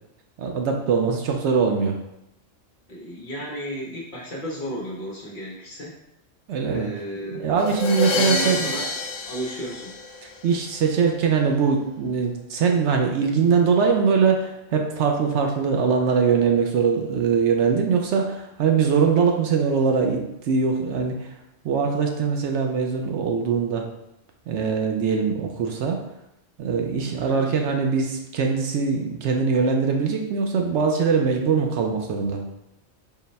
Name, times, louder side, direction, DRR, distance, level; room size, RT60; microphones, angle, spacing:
voice 1, 0.4-2.0 6.5-6.9 7.3-8.7 10.4-21.3 21.6-23.8 24.5-26.0 26.6-32.4, right 5 dB, 70° right, 2 dB, 0.8 m, -22 dB
voice 2, 2.9-5.9 6.7-7.5 8.1-8.9 9.2-9.9 27.2-27.6, equal, 45° left, -4 dB, 0.8 m, -33 dB
sound 1, 7.6-10.5, left 3 dB, 75° left, 0.9 m, -27 dB
3.9 x 2.1 x 4.0 m, 0.85 s
omnidirectional pair, 1.3 m